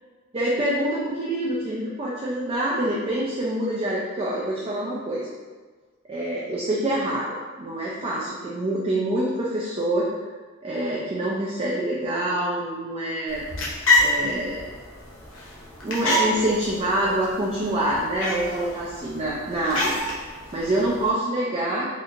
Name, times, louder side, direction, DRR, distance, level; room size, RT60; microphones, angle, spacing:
voice 1, 0.3-5.3 6.1-10.1 10.6-13.5 14.0-14.7 15.8-19.9 20.2-21.9, right 1 dB, 25° right, -5 dB, 0.4 m, -26 dB
sound 1, 13.3-21.1, left 1 dB, 65° left, 0.8 m, -27 dB
4.2 x 2.7 x 2.5 m, 1.4 s
head